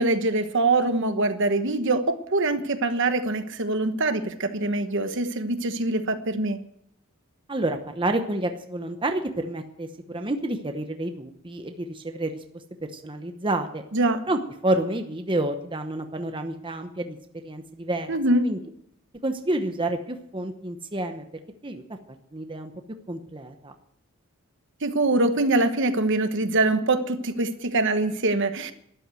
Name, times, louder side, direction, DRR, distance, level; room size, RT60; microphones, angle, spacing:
voice 1, 0.0-6.6 13.9-14.2 18.1-18.5 24.8-28.7, right 2 dB, 55° right, 8 dB, 1.2 m, -24 dB
voice 2, 7.5-12.4 12.9-13.8 14.3-17.2 17.4-18.1 18.4-18.6 19.2-21.2 21.6-21.8 22.3-22.7 23.1-23.7, right 1 dB, 25° right, 6 dB, 0.9 m, -29 dB
13.0 x 11.0 x 7.7 m, 0.73 s
head